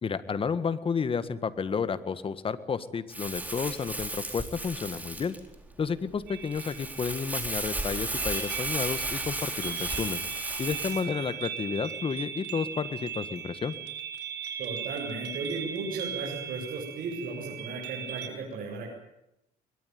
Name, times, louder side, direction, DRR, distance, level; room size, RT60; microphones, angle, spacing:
voice 1, 0.0-5.3 5.8-10.2 10.6-13.7, left 6 dB, 30° left, 13 dB, 1.7 m, -31 dB
Crumpling crinkling, 3.1-11.0, right 1 dB, 10° right, 4.2 m, -34 dB
sound 1, 6.3-18.3, right 9 dB, 85° right, 4.3 m, -38 dB
voice 2, 10.9-11.3 14.6-18.9, right 4 dB, 55° right, -2 dB, 8.0 m, -36 dB
23.0 x 21.0 x 9.5 m, 0.87 s
cardioid pair, 110°, 17 cm